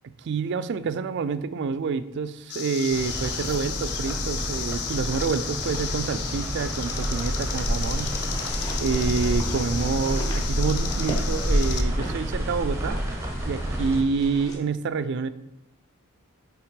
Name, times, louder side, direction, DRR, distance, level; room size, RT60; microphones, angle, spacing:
voice 1, 0.0-8.1 8.8-13.0 13.4-15.3, right 5 dB, 50° right, 13 dB, 0.3 m, -28 dB
sound 1, 2.5-11.8, left 8 dB, 80° left, 0.6 m, -34 dB
sound 2, 2.9-14.0, right 1 dB, 10° right, 0.7 m, -31 dB
sound 3, 5.6-14.5, equal, 15° left, 1.1 m, -30 dB
5.7 x 3.5 x 5.2 m, 0.86 s
head